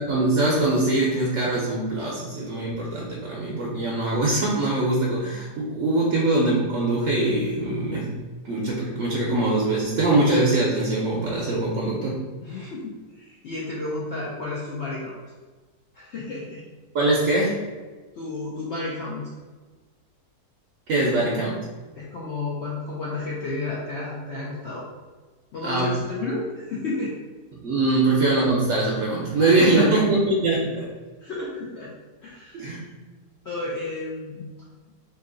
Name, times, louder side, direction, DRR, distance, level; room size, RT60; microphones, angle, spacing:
voice 1, 0.1-8.1 8.4-12.3 16.9-17.6 20.9-21.6 25.6-26.0 27.5-30.9 32.5-32.9, right 2 dB, 65° right, -4 dB, 0.7 m, -22 dB
voice 2, 12.4-15.1 15.9-16.6 18.1-19.3 21.1-21.3 22.0-24.8 25.5-27.2 27.9-28.0 29.6-30.0 31.2-31.9 32.2-32.8 33.4-34.5, left 2 dB, 75° left, -5 dB, 0.6 m, -32 dB
2.9 x 2.6 x 3.7 m, 1.3 s
omnidirectional pair, 1.8 m